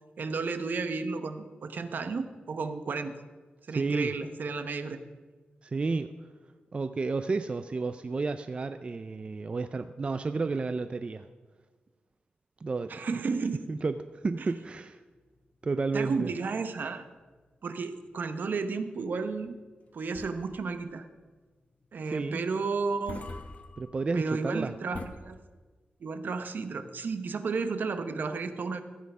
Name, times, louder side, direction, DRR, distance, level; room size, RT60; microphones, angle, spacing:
voice 1, 0.2-3.1 3.7-5.0 12.9-13.6 14.4-14.5 15.9-17.0 17.6-19.6 19.9-21.0 21.9-23.3 24.1-25.4 26.0-28.8, right 4 dB, 65° right, 9 dB, 0.9 m, -32 dB
voice 2, 3.7-4.1 5.6-6.1 6.7-11.3 12.6-12.9 13.7-15.0 15.6-16.3 22.1-22.4 23.8-24.7, right 3 dB, 35° right, 10 dB, 0.4 m, -31 dB
sound 1, 13.9-25.1, left 3 dB, 40° left, 1.1 m, -48 dB
14.5 x 8.5 x 5.5 m, 1.4 s
wide cardioid pair, 150°, 3 cm